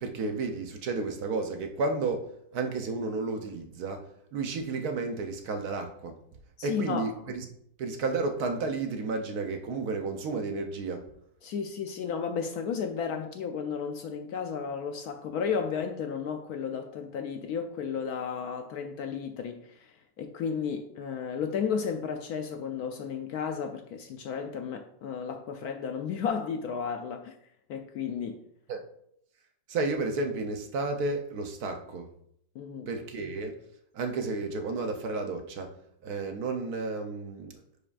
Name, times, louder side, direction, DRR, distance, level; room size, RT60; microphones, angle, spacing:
voice 1, 0.0-6.1 6.6-7.4 7.8-11.1 28.7-28.8 29.7-32.1 32.9-33.6 33.9-35.8 36.0-37.6, right 3 dB, 65° right, 1.1 m, -32 dB
voice 2, 6.6-7.1 11.4-27.4 27.7-28.4 32.5-32.9, left 6 dB, 70° left, 0.9 m, -33 dB
10.0 x 4.9 x 2.4 m
omnidirectional pair, 1.9 m